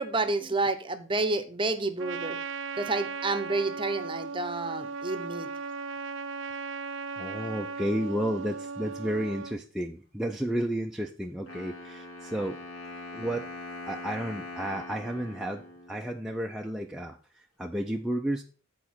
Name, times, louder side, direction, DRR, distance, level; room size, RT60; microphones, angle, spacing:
voice 1, 0.0-2.4 2.7-5.5, right 2 dB, 25° right, 10 dB, 0.7 m, -29 dB
Trumpet, 2.0-9.6, right 5 dB, 65° right, 0.5 m, -37 dB
voice 2, 7.2-12.6 13.1-13.5 13.9-18.4, equal, ahead, 1 dB, 0.4 m, -32 dB
Wind instrument woodwind instrument, 11.5-16.4, left 2 dB, 80° left, 2.4 m, -42 dB
8.4 x 4.6 x 5.9 m, 0.39 s
head